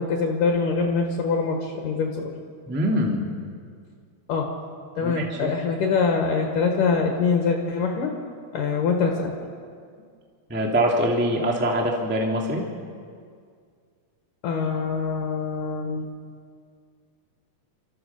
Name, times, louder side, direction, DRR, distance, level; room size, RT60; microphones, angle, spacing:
voice 1, 0.0-2.3 4.3-4.5 5.0-8.1 8.5-9.3 14.4-16.1, left 4 dB, 65° left, 2 dB, 2.9 m, -24 dB
voice 2, 2.7-3.2 4.9-5.5 10.5-12.6, equal, 5° right, 0 dB, 1.2 m, -24 dB
27.0 x 14.0 x 6.9 m, 2.1 s
omnidirectional pair, 4.3 m